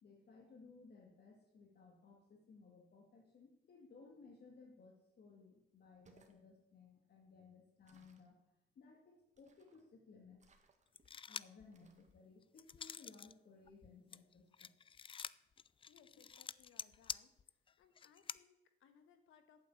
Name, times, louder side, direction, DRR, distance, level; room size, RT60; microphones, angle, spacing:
voice 1, 0.0-8.4 8.8-10.5 11.3-14.7, left 4 dB, 55° left, 1 dB, 2.3 m, -61 dB
sound 1, 5.9-6.4 7.8-8.3 9.3-9.9 10.4-11.1 11.7-12.1, right 4 dB, 35° right, 1.9 m, -70 dB
sound 2, 11.0-11.6 12.1-13.3 13.7-18.4, left 7 dB, 25° left, 0.3 m, -48 dB
voice 2, 15.9-17.3 17.8-19.7, left 7 dB, 85° left, 9 dB, 1.6 m, -67 dB
9.0 x 8.5 x 8.5 m, 0.86 s
cardioid pair, 90°, 20 cm